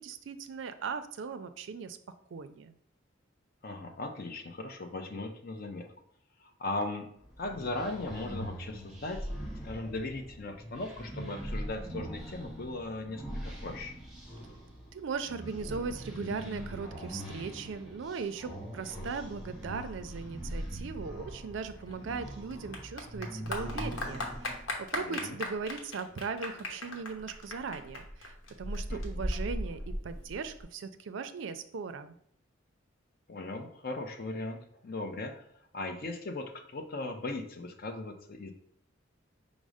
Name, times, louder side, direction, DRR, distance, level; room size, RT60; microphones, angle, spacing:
voice 1, 0.0-2.0 2.3-2.8 14.9-32.1, right 5 dB, 70° right, 10 dB, 0.4 m, -38 dB
voice 2, 3.6-5.9 6.4-9.3 9.6-14.0 25.0-25.4 28.9-29.0 33.3-35.5 35.7-38.5, left 2 dB, 50° left, 5 dB, 0.6 m, -38 dB
sound 1, 7.2-24.6, equal, 5° right, 0.9 m, -42 dB
Clapping / Applause, 21.6-30.6, left 1 dB, 85° left, 0.9 m, -38 dB
5.2 x 2.0 x 4.8 m, 0.68 s
head